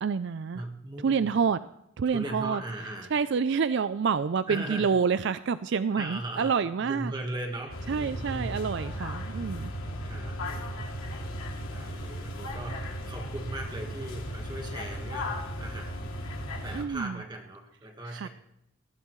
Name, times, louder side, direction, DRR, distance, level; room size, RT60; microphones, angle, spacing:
voice 1, 0.0-0.6 1.0-1.7 2.0-2.6 3.1-7.1 7.9-9.7 16.7-17.2 18.1-18.3, right 6 dB, 55° right, 13 dB, 0.4 m, -28 dB
voice 2, 0.5-1.4 2.0-3.1 4.5-5.0 5.9-6.5 6.9-8.8 9.3-9.7 10.0-11.2 11.7-16.1 16.6-18.3, right 1 dB, 20° right, 2 dB, 1.5 m, -39 dB
sound 1, 7.7-16.8, equal, 85° left, 2.7 m, -36 dB
19.0 x 14.5 x 3.1 m, 0.83 s
head